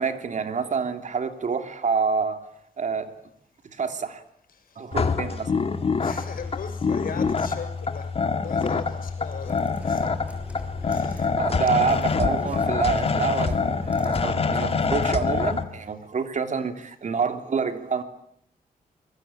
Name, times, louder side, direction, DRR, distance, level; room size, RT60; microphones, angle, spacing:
voice 1, 0.0-2.5 2.8-3.1 3.6-4.2 4.8-5.5 11.1-18.0, right 5 dB, 50° right, 8 dB, 3.0 m, -27 dB
sound 1, 4.9-15.6, left 5 dB, 40° left, 2.2 m, -25 dB
voice 2, 6.0-10.1 10.9-11.4, left 6 dB, 70° left, 8 dB, 6.4 m, -38 dB
sound 2, 9.3-14.7, left 1 dB, 10° right, 6.2 m, -42 dB
26.0 x 22.0 x 8.9 m, 0.72 s
wide cardioid pair, 115°, 15 cm